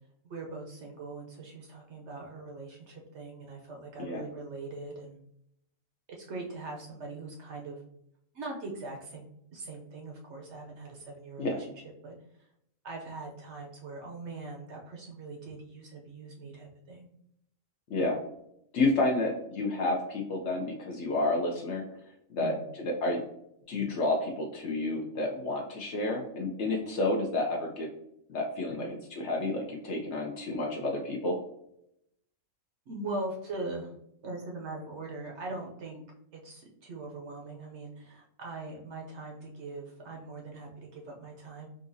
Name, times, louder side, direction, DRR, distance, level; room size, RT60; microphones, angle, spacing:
voice 1, 0.2-5.2 6.1-7.8 8.3-9.3 9.5-11.7 12.0-12.2 12.8-17.1 22.4-22.6 28.8-29.0 32.9-34.0 34.2-36.0 36.3-41.7, right 2 dB, 65° right, 0 dB, 0.8 m, -41 dB
voice 2, 17.9-18.2 18.7-21.8 22.3-23.2 23.7-27.9 28.3-31.4, left 2 dB, 65° left, 1 dB, 0.7 m, -30 dB
3.8 x 2.5 x 2.5 m, 0.76 s
omnidirectional pair, 1.5 m